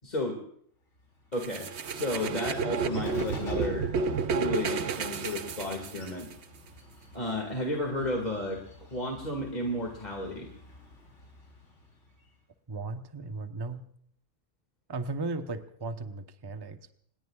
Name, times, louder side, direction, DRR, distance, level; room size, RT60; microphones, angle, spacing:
voice 1, 0.0-0.4 1.3-3.9 4.3-6.3 7.1-8.6 8.9-10.5, left 1 dB, 35° left, 2 dB, 2.3 m, -33 dB
Bird, 1.0-12.4, left 1 dB, 70° left, 4.2 m, -48 dB
sound 1, 1.4-6.3, right 5 dB, 65° right, 1.1 m, -31 dB
voice 2, 12.7-13.9 14.9-16.9, right 3 dB, 20° right, 7 dB, 0.9 m, -36 dB
27.5 x 20.5 x 2.4 m, 0.65 s
omnidirectional pair, 1.3 m